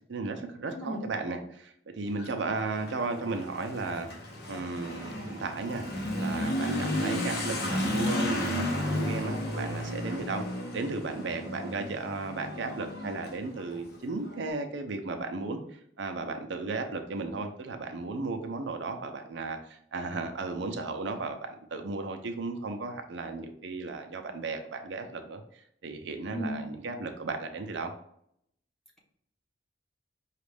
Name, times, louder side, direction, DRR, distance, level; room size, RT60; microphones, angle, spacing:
voice 1, 0.1-4.1 4.5-5.8 6.2-10.4 10.7-15.6 16.0-25.4 25.8-27.9, right 3 dB, 75° right, 6 dB, 0.5 m, -35 dB
voice 2, 0.7-1.0 26.3-26.7, equal, ahead, -3 dB, 1.0 m, -35 dB
Motorcycle / Accelerating revving vroom, 2.1-14.4, left 1 dB, 55° left, 1.0 m, -33 dB
5.1 x 2.4 x 3.3 m, 0.71 s
head